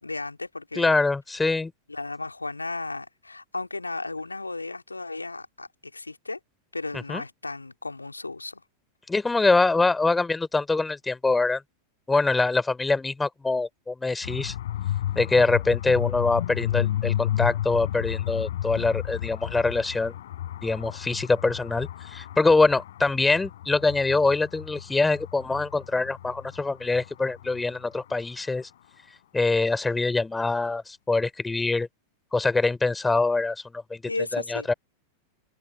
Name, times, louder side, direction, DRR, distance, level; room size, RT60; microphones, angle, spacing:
voice 1, 0.0-1.0 1.9-6.4 6.7-8.6 34.1-34.7, left 3 dB, 80° left, 2.5 m, -34 dB
voice 2, 0.8-1.7 7.1-7.2 9.1-11.6 12.1-14.5 15.1-20.1 20.6-28.7 29.3-31.9 32.3-34.0 34.3-34.7, left 3 dB, 10° left, 3.3 m, -24 dB
sound 1, 14.2-28.1, left 12 dB, 60° left, 6.3 m, -32 dB
figure-of-eight pair, 90°, 0 cm